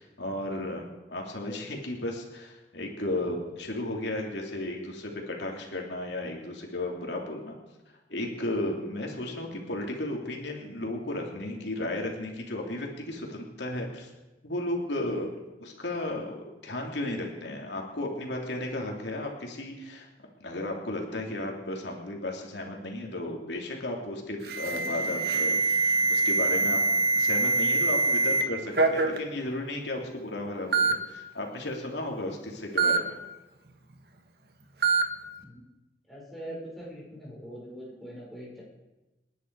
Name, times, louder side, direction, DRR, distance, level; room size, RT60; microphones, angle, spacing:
voice 1, 0.0-7.6 8.1-14.1 14.4-20.1 20.4-25.6 26.1-26.8 27.1-33.2, left 1 dB, 85° left, 0 dB, 3.0 m, -34 dB
Alarm, 24.4-28.4 28.7-29.2 30.0-30.1 30.7-30.9 32.8-33.0 34.8-35.0, right 3 dB, 65° right, 1.7 m, -24 dB
voice 2, 36.1-38.6, right 1 dB, ahead, -6 dB, 5.6 m, -42 dB
29.0 x 10.0 x 4.8 m, 1.1 s
head